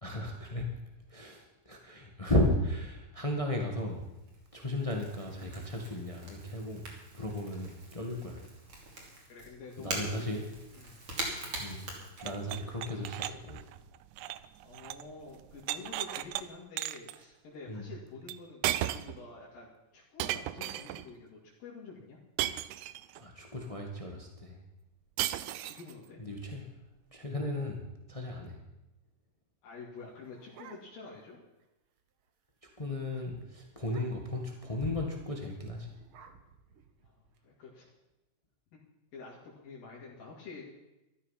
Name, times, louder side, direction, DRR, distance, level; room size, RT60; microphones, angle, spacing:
voice 1, 0.0-0.7 1.1-4.0 4.5-6.9 7.1-8.4 9.8-10.4 11.6-11.9 12.2-13.6 17.7-17.9 23.2-24.6 26.2-26.7 27.1-27.8 28.1-28.6 32.6-35.9, left 1 dB, 50° left, 2 dB, 0.4 m, -35 dB
Crackle / Crack, 3.2-12.8, right 2 dB, 45° right, 3.7 m, -44 dB
voice 2, 9.3-10.4 10.7-11.0 14.6-22.2 25.6-26.2 29.6-31.4 37.0-37.9 38.7-38.9 39.1-40.7, left 4 dB, 80° left, -5 dB, 4.1 m, -48 dB
sound 1, 12.2-15.1 15.4-16.4 16.8-17.2 18.3-18.4 18.6-19.2 20.2-21.1 22.4-23.2 25.2-25.9, right 14 dB, 85° right, 1.7 m, -35 dB
sound 2, 30.0-31.2 31.6-31.7 32.0-32.3 32.6-32.8 33.1-33.3 33.8-34.4 35.3-37.4, right 6 dB, 65° right, 1.3 m, -56 dB
14.0 x 13.0 x 5.8 m, 0.97 s
omnidirectional pair, 4.0 m